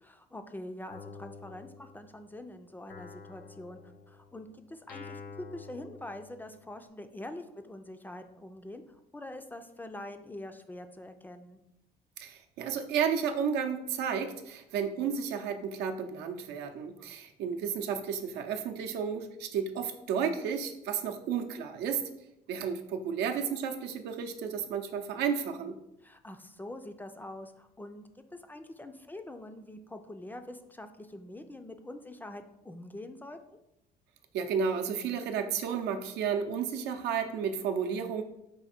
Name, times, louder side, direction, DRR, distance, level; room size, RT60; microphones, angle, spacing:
voice 1, 0.0-3.8 4.1-11.6 17.0-17.2 26.0-33.6, left 1 dB, 10° left, 7 dB, 0.3 m, -45 dB
Guitar, 0.9-2.4 2.9-6.8, left 4 dB, 65° left, 0.7 m, -49 dB
voice 2, 12.2-22.0 22.5-25.8 34.3-38.2, right 7 dB, 85° right, 5 dB, 0.6 m, -32 dB
4.8 x 2.6 x 4.2 m, 0.85 s
cardioid pair, 110°, 17 cm